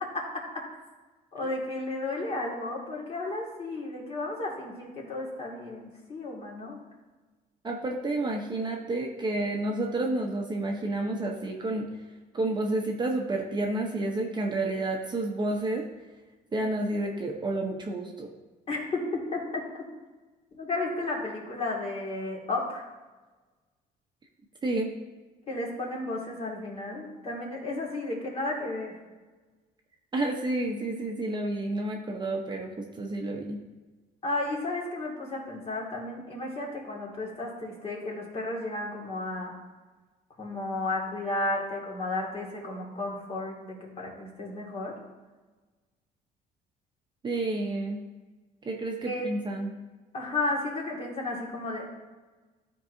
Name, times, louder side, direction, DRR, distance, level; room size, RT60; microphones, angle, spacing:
voice 1, 1.3-6.8 18.7-19.4 20.5-22.9 25.5-28.9 34.2-39.5 40.4-44.9 49.0-49.3 50.1-51.9, left 2 dB, 35° left, -2 dB, 2.1 m, -33 dB
voice 2, 7.6-11.9 12.3-15.8 16.5-18.3 24.6-24.9 30.1-33.6 47.2-48.0 48.6-49.7, right 2 dB, 25° right, 1 dB, 0.9 m, -30 dB
11.5 x 4.7 x 2.7 m, 1.2 s
cardioid pair, 110°, 17 cm